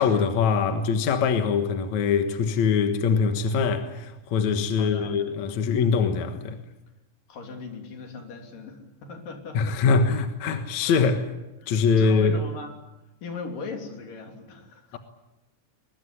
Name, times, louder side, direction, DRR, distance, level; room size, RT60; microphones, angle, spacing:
voice 1, 0.0-6.6 9.5-11.3 11.7-12.4 14.9-15.0, left 5 dB, 65° left, 2.7 m, -23 dB
voice 2, 4.7-5.3 7.3-9.9 10.9-11.0 11.6-12.7 13.2-15.0, left 4 dB, 80° left, 4.9 m, -39 dB
22.5 x 21.0 x 9.8 m
omnidirectional pair, 3.8 m